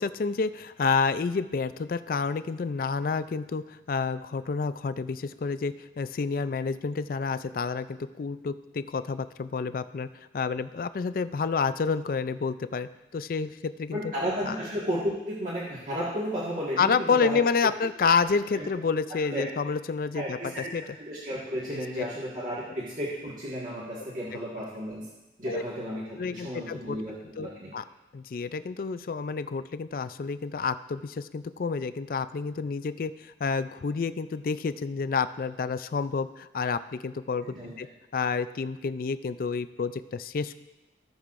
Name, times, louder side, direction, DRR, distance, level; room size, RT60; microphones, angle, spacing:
voice 1, 0.0-14.0 14.5-14.6 16.8-20.4 20.7-20.8 21.7-21.8 25.5-25.6 26.2-27.0 27.4-27.8 28.1-37.9 38.1-40.6, left 5 dB, 50° left, 13 dB, 0.4 m, -29 dB
voice 2, 13.9-17.4 18.5-18.6 19.3-19.5 20.1-20.7 21.0-25.1 25.4-27.7 37.4-37.7, equal, 45° right, -7 dB, 1.7 m, -33 dB
17.5 x 6.4 x 2.5 m, 1.0 s
head